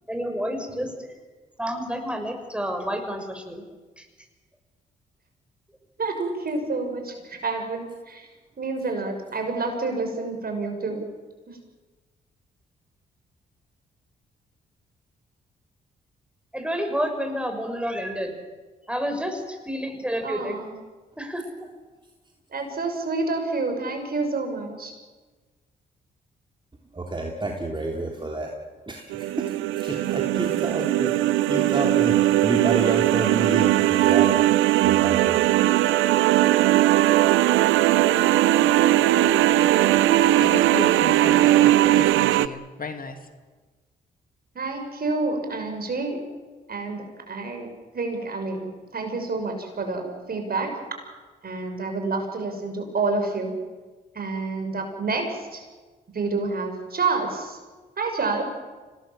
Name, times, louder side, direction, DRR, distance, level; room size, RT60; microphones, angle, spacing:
voice 1, 0.1-1.1 1.6-3.6 4.0-4.1 16.5-18.3 18.9-20.5 21.2-21.7, equal, 5° right, 5 dB, 6.4 m, -29 dB
voice 2, 6.0-8.3 8.6-11.1 11.5-11.6 20.2-20.7 22.5-24.9 44.5-46.2 46.7-47.7 47.9-48.7 48.9-50.7 51.4-53.5 54.1-55.6 56.1-57.6 58.0-58.4, right 3 dB, 50° right, 4 dB, 6.1 m, -28 dB
voice 3, 26.9-28.5 28.9-29.5 29.8-31.1 31.5-34.4 34.8-35.4, right 2 dB, 25° right, 1 dB, 3.4 m, -29 dB
sound 1, 29.1-42.5, right 14 dB, 80° right, 0.7 m, -19 dB
voice 4, 40.4-43.3, left 4 dB, 45° left, 7 dB, 2.6 m, -35 dB
25.5 x 19.0 x 7.6 m, 1.3 s
hypercardioid pair, 45°, 20 cm